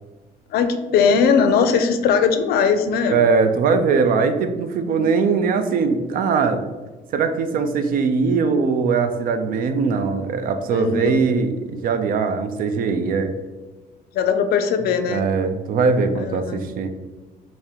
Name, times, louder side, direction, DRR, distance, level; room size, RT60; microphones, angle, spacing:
voice 1, 0.5-3.2 4.8-5.1 10.7-11.2 14.1-15.3 16.2-16.6, left 6 dB, 70° left, 8 dB, 0.4 m, -19 dB
voice 2, 3.1-6.6 7.1-13.3 15.1-16.9, right 5 dB, 55° right, 8 dB, 0.4 m, -20 dB
4.2 x 2.1 x 3.5 m, 1.2 s
cardioid pair, 110°, 17 cm